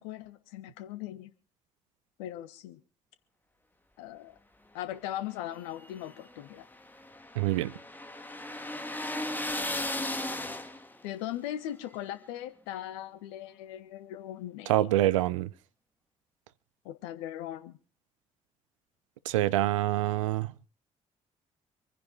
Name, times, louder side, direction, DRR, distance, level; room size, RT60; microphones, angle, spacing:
voice 1, 0.0-1.3 2.2-2.8 4.0-4.4 4.7-6.6 11.0-14.8 16.8-17.8, left 12 dB, 70° left, 1.3 m, -39 dB
sound 1, 5.6-11.1, left 1 dB, 10° left, 2.0 m, -36 dB
voice 2, 7.4-7.8 14.7-15.5 19.3-20.5, right 15 dB, 75° right, 0.6 m, -26 dB
26.0 x 10.0 x 3.8 m
figure-of-eight pair, 45°, 16 cm